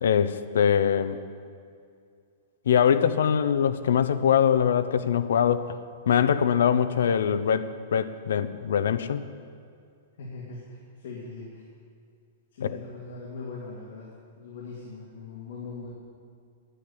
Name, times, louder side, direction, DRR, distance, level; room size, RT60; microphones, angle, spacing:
voice 1, 0.0-1.2 2.7-5.7 6.1-9.2 12.6-12.7, left 8 dB, 85° left, 12 dB, 0.7 m, -23 dB
voice 2, 10.2-11.7 12.5-15.9, left 3 dB, 60° left, -5 dB, 2.7 m, -40 dB
10.0 x 10.0 x 8.8 m, 2.3 s
supercardioid pair, 175°, 0 cm